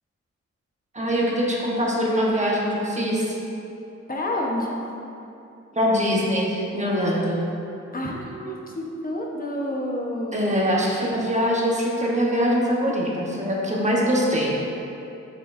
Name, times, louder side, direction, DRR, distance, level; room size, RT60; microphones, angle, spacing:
voice 1, 0.9-3.4 5.7-7.4 10.3-14.6, equal, 25° right, -4 dB, 1.1 m, -23 dB
voice 2, 4.1-4.7 7.9-10.5, left 1 dB, 30° left, -1 dB, 1.0 m, -29 dB
7.2 x 6.5 x 2.6 m, 2.8 s
cardioid pair, 85°, 29 cm